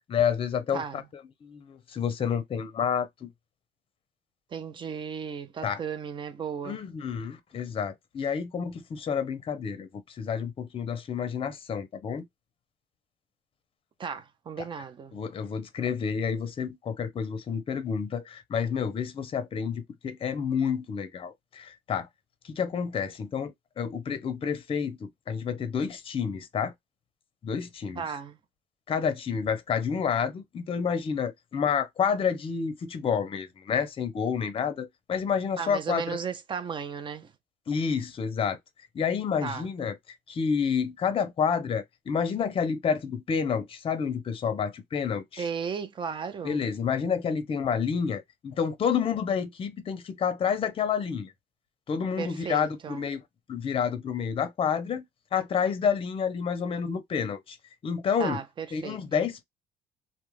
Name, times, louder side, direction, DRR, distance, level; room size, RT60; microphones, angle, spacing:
voice 1, 0.1-1.0 1.4-3.3 5.6-5.8 6.6-12.2 14.6-14.7 15.1-22.1 22.4-26.7 27.4-28.0 28.9-36.2 37.7-38.6 38.9-40.0 40.3-45.5 46.4-51.3 51.9-53.2 53.5-55.0 55.3-57.6 57.8-58.4 58.7-59.4, left 7 dB, 35° left, 0.6 m, -29 dB
voice 2, 4.5-6.8 14.0-15.2 28.0-28.4 35.6-37.3 39.4-39.7 45.4-46.6 52.2-53.1 58.2-59.0, right 6 dB, 30° right, 0.5 m, -35 dB
2.3 x 2.2 x 3.0 m
cardioid pair, 115°, 17 cm